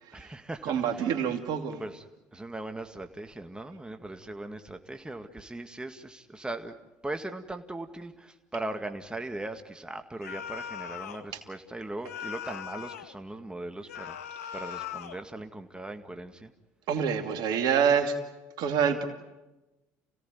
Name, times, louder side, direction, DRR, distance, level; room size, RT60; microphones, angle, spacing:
voice 1, 0.1-1.1 1.8-2.1 2.3-6.8 7.0-16.5, right 2 dB, 10° right, 6 dB, 2.0 m, -39 dB
voice 2, 0.6-1.8 16.9-18.1 18.6-19.0, right 7 dB, 65° right, 6 dB, 2.6 m, -26 dB
sound 1, 10.2-11.3 12.0-13.2 13.9-15.2, left 9 dB, 90° left, 0.9 m, -39 dB
29.0 x 17.5 x 9.4 m, 1.1 s
hypercardioid pair, 65°, 8 cm